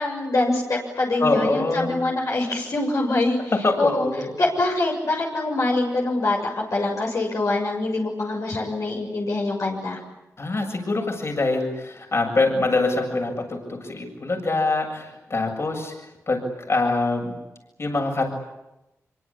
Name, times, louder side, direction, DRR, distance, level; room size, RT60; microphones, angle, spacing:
voice 1, 0.0-3.4 3.8-4.1 4.4-10.0, left 2 dB, 70° left, -1 dB, 6.8 m, -24 dB
voice 2, 1.2-2.0 3.5-4.3 10.4-15.9 16.3-17.3 17.8-18.3, left 2 dB, 50° left, 3 dB, 7.5 m, -24 dB
25.5 x 24.5 x 8.7 m, 0.95 s
cardioid pair, 65°, 6 cm